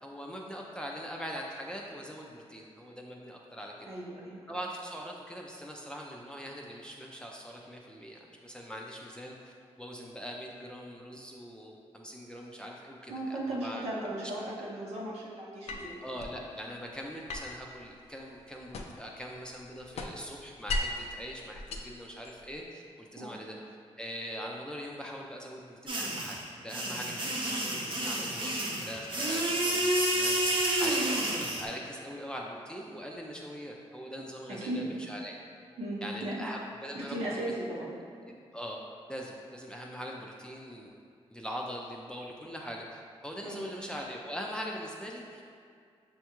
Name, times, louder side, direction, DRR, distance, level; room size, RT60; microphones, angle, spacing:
voice 1, 0.0-3.7 4.5-14.1 16.0-23.6 24.0-26.4 26.6-28.5 28.8-30.4 30.8-35.4 36.0-37.5 38.5-38.8 39.1-40.9 41.3-45.4, equal, 5° left, -2 dB, 0.4 m, -42 dB
voice 2, 3.9-4.4 13.1-16.0 23.2-23.4 34.6-34.9 35.8-36.3 36.9-37.9 43.4-43.7, right 1 dB, 85° right, -6 dB, 0.8 m, -36 dB
sound 1, 15.7-16.4 17.3-19.1 19.5-21.1 21.5-22.6, left 2 dB, 70° left, 0.4 m, -37 dB
sound 2, 25.9-31.6, right 1 dB, 50° right, 0.8 m, -30 dB
6.2 x 2.3 x 2.9 m, 2.3 s
cardioid pair, 75°, 11 cm